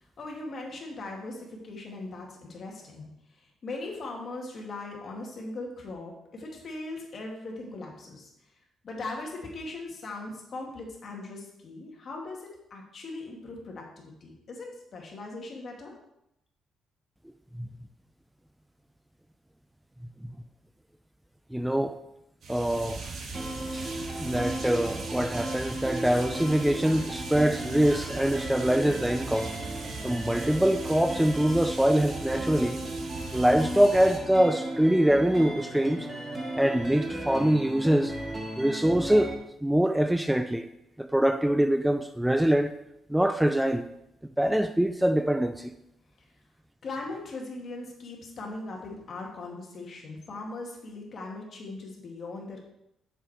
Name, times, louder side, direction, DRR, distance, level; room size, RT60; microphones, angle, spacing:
voice 1, 0.2-8.3 8.8-15.9 46.8-52.6, left 2 dB, 50° left, 2.4 m, -39 dB
voice 2, 21.5-22.0 22.5-23.0 23.7-23.9 24.2-29.5 30.0-32.8 33.3-36.1 36.5-38.1 38.6-39.3 39.6-40.7 41.0-42.8 43.1-43.9 44.4-45.7, right 1 dB, 5° right, 0.4 m, -24 dB
sound 1, 22.4-34.2, right 4 dB, 65° right, 1.7 m, -39 dB
sound 2, 23.3-39.3, right 1 dB, 25° right, 2.3 m, -36 dB
7.4 x 7.0 x 4.5 m
cardioid pair, 90°, 0 cm